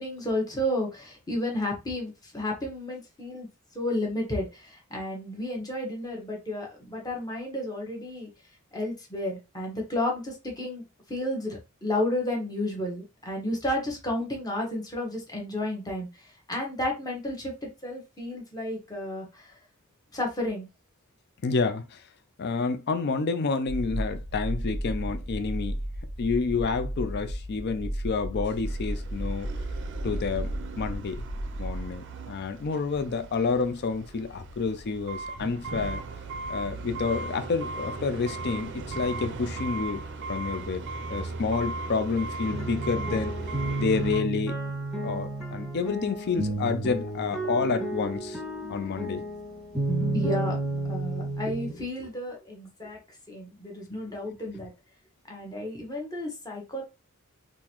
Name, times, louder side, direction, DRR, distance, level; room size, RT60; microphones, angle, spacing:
voice 1, 0.0-3.5 3.7-8.3 8.7-10.8 11.1-16.1 16.5-17.5 17.8-19.5 20.1-20.7 50.1-50.6 50.9-53.0 53.3-54.7 55.3-56.8, left 1 dB, 15° left, 1.1 m, -32 dB
voice 2, 21.4-22.0 22.4-25.8 26.2-29.5 30.0-31.2 31.6-36.0 36.5-40.0 40.3-40.8 41.1-43.3 43.8-44.5 45.0-48.4 48.7-49.2, left 4 dB, 50° left, 0.4 m, -29 dB
sound 1, 23.7-32.0, equal, 85° left, 1.2 m, -34 dB
sound 2, 28.6-44.2, right 3 dB, 55° right, 0.5 m, -37 dB
sound 3, 42.5-51.8, right 2 dB, ahead, 1.7 m, -31 dB
3.9 x 2.5 x 3.0 m
head